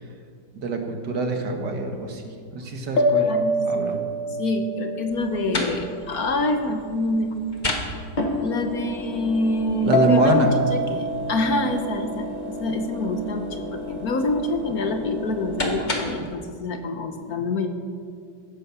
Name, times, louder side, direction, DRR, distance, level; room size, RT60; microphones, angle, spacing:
voice 1, 0.5-3.3 3.7-4.0 9.8-10.5, right 3 dB, 65° right, 4 dB, 2.2 m, -24 dB
sound 1, 3.0-6.5 9.9-13.0, left 1 dB, 90° left, 2.2 m, -26 dB
voice 2, 3.2-3.6 4.4-7.4 8.4-17.7, left 2 dB, 55° left, 6 dB, 1.5 m, -26 dB
sound 2, 5.1-16.3, left 1 dB, 25° left, 1.6 m, -32 dB
16.5 x 10.5 x 7.0 m, 2.2 s
omnidirectional pair, 2.0 m